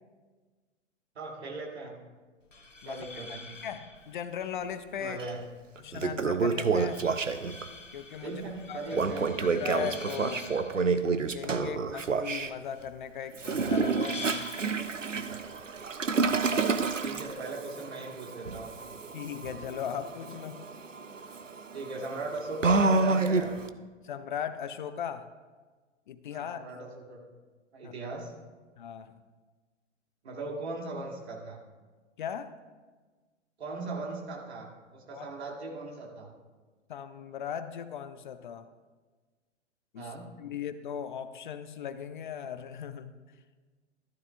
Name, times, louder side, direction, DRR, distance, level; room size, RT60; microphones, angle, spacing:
voice 1, 1.2-1.9 2.8-3.4 5.0-5.4 8.2-9.3 17.0-18.9 21.7-23.6 26.3-27.2 27.7-28.3 30.2-31.6 33.6-36.3 39.9-40.3, right 3 dB, 60° right, -1 dB, 2.4 m, -38 dB
sound 1, 2.4-17.4, left 3 dB, 85° left, 1.0 m, -48 dB
voice 2, 2.8-5.2 5.8-7.1 7.9-8.4 8.7-8.8 9.4-10.5 11.3-14.5 19.1-20.6 24.0-25.3 26.1-26.6 27.8-27.9 28.8-29.2 32.2-32.5 35.1-35.3 36.9-38.7 39.9-40.1 40.4-43.2, left 8 dB, 45° left, 12 dB, 0.5 m, -38 dB
Toilet flush, 5.2-5.3 5.8-7.7 8.9-12.5 13.3-23.7, right 4 dB, 90° right, 0.6 m, -29 dB
14.5 x 12.5 x 2.4 m, 1.4 s
figure-of-eight pair, 110°, 37 cm